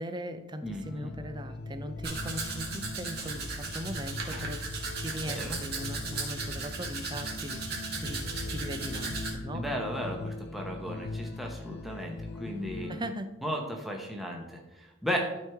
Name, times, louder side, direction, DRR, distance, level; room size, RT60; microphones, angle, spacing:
voice 1, 0.0-7.7 8.0-9.7 12.9-13.3, equal, 20° right, 9 dB, 0.5 m, -39 dB
sound 1, 0.6-13.1, left 2 dB, 50° left, 0.4 m, -40 dB
voice 2, 0.6-1.1 5.1-5.6 9.5-12.9 13.4-15.3, equal, ahead, 0 dB, 0.8 m, -35 dB
Domestic sounds home sounds, 2.0-9.3, right 3 dB, 45° right, 1.6 m, -36 dB
12.0 x 4.6 x 3.5 m, 0.99 s
head